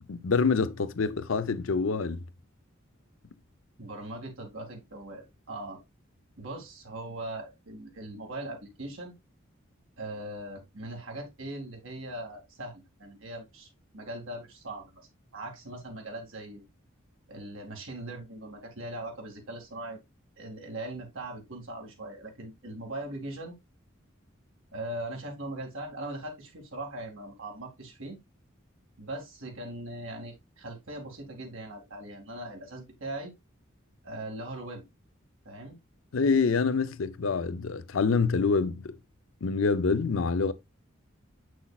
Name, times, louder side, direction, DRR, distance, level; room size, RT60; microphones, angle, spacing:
voice 1, 0.1-2.3 36.1-39.0 39.4-40.5, left 4 dB, 80° left, 0.6 m, -26 dB
voice 2, 3.8-5.8 6.4-9.1 10.0-16.7 17.3-20.0 20.4-23.6 24.7-28.2 29.0-33.3 34.0-34.8 35.5-35.8, right 1 dB, 80° right, 2.3 m, -40 dB
7.0 x 6.2 x 2.3 m
head